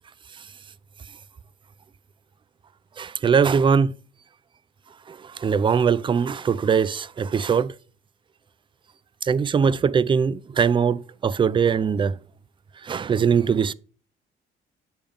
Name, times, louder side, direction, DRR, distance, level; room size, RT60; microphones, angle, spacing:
voice 1, 3.0-3.9 5.4-7.7 9.2-12.2 12.8-13.7, right 6 dB, 25° right, 0.3 m, -21 dB
8.7 x 3.4 x 5.4 m
cardioid pair, 90°, 20 cm